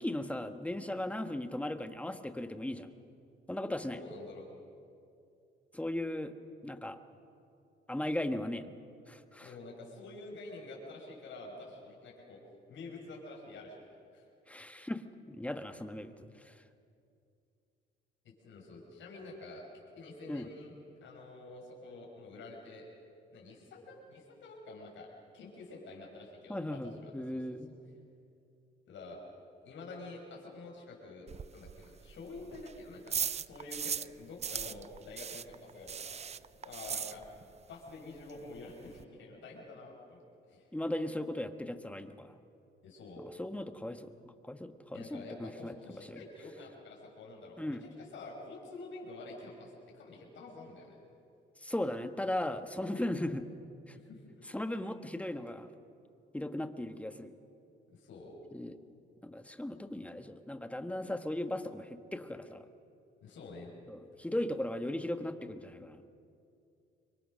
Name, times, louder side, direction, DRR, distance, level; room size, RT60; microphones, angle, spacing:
voice 1, 0.0-2.9 3.5-4.0 5.7-6.3 6.6-7.0 7.9-8.7 9.1-9.5 14.5-16.6 20.3-20.5 26.5-27.7 40.7-42.3 43.2-44.1 44.4-46.2 47.6-47.8 51.6-53.4 53.9-54.0 54.5-55.7 56.3-57.3 58.5-58.8 59.2-62.6 63.9-66.0, left 1 dB, 5° left, 8 dB, 1.4 m, -37 dB
voice 2, 3.9-4.4 9.4-12.4 12.7-13.8 14.1-14.2 18.2-19.7 20.0-20.7 21.0-22.9 23.3-25.1 25.3-27.4 28.9-29.2 29.6-37.2 37.7-40.7 42.8-43.2 44.9-51.0 53.9-54.2 57.9-58.3 63.2-63.7, left 2 dB, 70° left, -2 dB, 5.7 m, -48 dB
sound 1, 31.3-34.1 34.4-37.6 37.9-38.0 38.3-38.4 38.6-39.0, right 7 dB, 35° right, 0.5 m, -38 dB
26.0 x 23.0 x 6.4 m, 2.5 s
cardioid pair, 90°, 20 cm